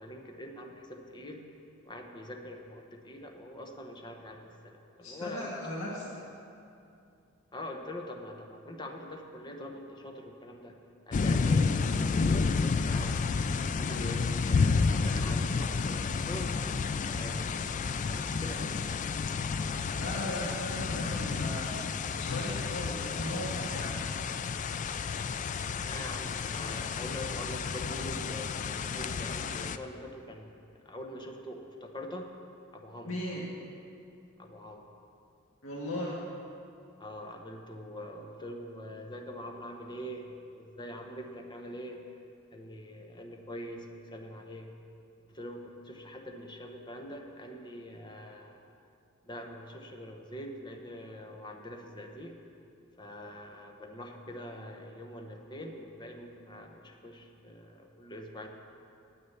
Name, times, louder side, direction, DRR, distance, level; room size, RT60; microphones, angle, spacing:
voice 1, 0.0-1.5 1.8-5.5 5.8-6.0 7.5-10.8 11.1-13.3 13.7-17.5 18.1-19.0 25.9-32.3 32.7-33.1 34.4-34.8 37.0-42.0 42.5-44.7 45.3-48.6 49.2-52.4 53.0-58.5, left 1 dB, 20° left, 3 dB, 1.0 m, -44 dB
voice 2, 5.0-6.1 19.9-21.7 22.1-24.0 33.0-33.5 35.6-36.2, left 1 dB, 85° left, -5 dB, 1.7 m, -37 dB
sound 1, 11.1-29.8, left 4 dB, 35° left, 0.3 m, -31 dB
9.7 x 8.6 x 7.2 m, 2.7 s
head